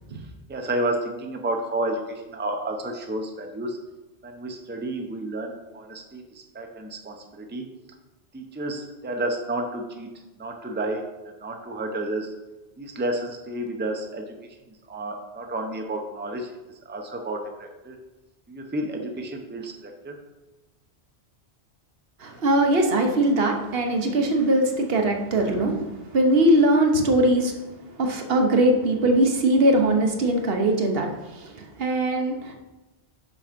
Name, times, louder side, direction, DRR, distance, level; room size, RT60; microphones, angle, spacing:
voice 1, 0.1-3.8 4.2-7.6 8.3-12.3 12.8-14.4 14.7-16.6 16.8-18.0 18.5-20.2, right 1 dB, 10° right, 3 dB, 0.6 m, -31 dB
voice 2, 22.2-27.6 27.9-32.5, right 1 dB, 65° right, 3 dB, 1.1 m, -21 dB
6.4 x 5.5 x 5.1 m, 1.1 s
omnidirectional pair, 1.1 m